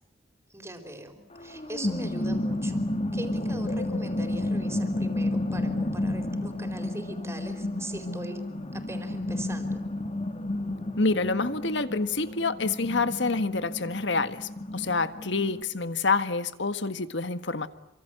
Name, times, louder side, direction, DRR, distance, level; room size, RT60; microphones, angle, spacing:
voice 1, 0.5-2.9 3.1-8.4 8.7-9.8, right 1 dB, 15° right, 7 dB, 4.5 m, -41 dB
sound 1, 1.4-15.6, left 1 dB, 35° left, 2.4 m, -31 dB
voice 2, 11.0-17.7, left 3 dB, 70° left, 11 dB, 1.6 m, -27 dB
27.5 x 25.5 x 8.0 m, 0.88 s
head